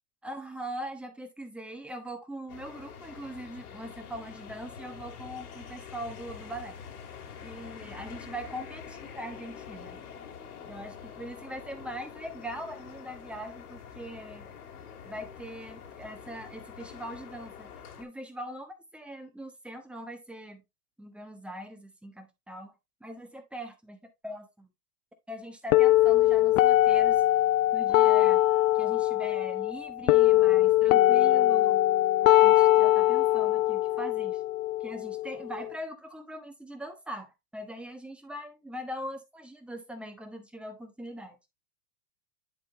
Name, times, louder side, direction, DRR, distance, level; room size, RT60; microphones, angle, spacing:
voice 1, 0.2-6.8 7.4-10.0 10.6-14.5 15.0-17.7 18.0-20.6 21.0-22.7 23.0-24.7 25.3-27.2 27.7-28.4 28.7-31.8 32.4-34.4 34.8-41.4, equal, ahead, 1.1 m, -41 dB
sound 1, 2.5-18.0, left 7 dB, 80° left, 2.3 m, -46 dB
sound 2, 25.7-35.7, left 15 dB, 60° left, 0.6 m, -22 dB
10.5 x 3.7 x 3.1 m
hypercardioid pair, 130°, 45 cm